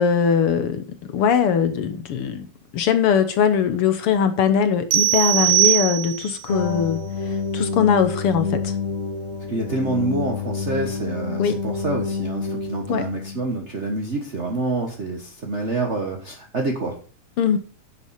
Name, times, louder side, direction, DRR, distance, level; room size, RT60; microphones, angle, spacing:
voice 1, 0.0-2.5 2.7-8.7 11.4-11.6 12.9-13.1 17.4-17.6, left 7 dB, 65° left, 1.5 m, -21 dB
sound 1, 4.9-6.4, right 17 dB, 70° right, 2.3 m, -19 dB
sound 2, 6.5-13.6, left 5 dB, 40° left, 1.2 m, -28 dB
voice 2, 9.5-17.0, right 2 dB, 45° right, 0.8 m, -27 dB
10.5 x 7.3 x 5.7 m
omnidirectional pair, 3.5 m